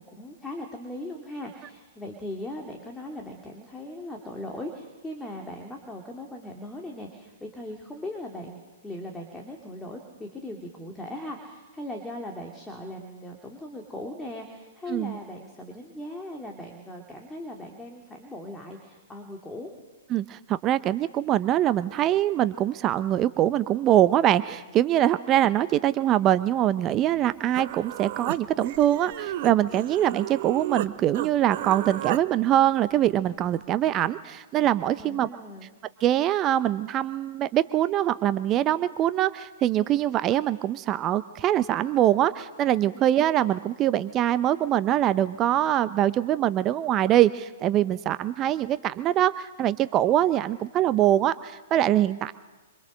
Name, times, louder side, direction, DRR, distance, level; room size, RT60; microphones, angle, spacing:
voice 1, 0.1-19.7 35.0-35.7 42.9-43.1, left 1 dB, 10° left, 1 dB, 2.8 m, -39 dB
voice 2, 20.1-35.3 36.0-52.3, right 12 dB, 25° right, 14 dB, 0.7 m, -23 dB
Human voice, 27.2-27.3 27.5-30.9 31.1-32.2, right 13 dB, 45° right, 1.0 m, -33 dB
26.0 x 26.0 x 6.4 m, 1.3 s
figure-of-eight pair, 115°, 0 cm